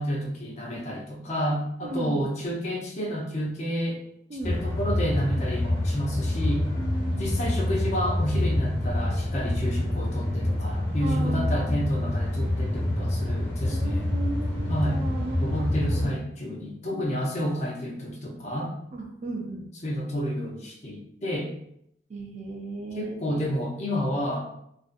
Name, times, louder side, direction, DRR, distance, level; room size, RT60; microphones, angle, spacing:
voice 1, 0.0-4.0 4.4-6.6 7.2-14.0 14.7-15.0 15.4-18.7 19.8-21.5 22.9-24.4, equal, 40° left, -1 dB, 0.6 m, -30 dB
voice 2, 1.8-2.3 4.3-4.5 5.3-5.5 6.7-7.3 11.0-11.8 13.7-16.2 16.9-17.2 18.9-19.7 22.1-23.4, right 2 dB, 40° right, 1 dB, 0.4 m, -36 dB
sound 1, 4.4-16.1, left 1 dB, 90° left, 1.0 m, -27 dB
2.5 x 2.3 x 2.5 m, 0.74 s
head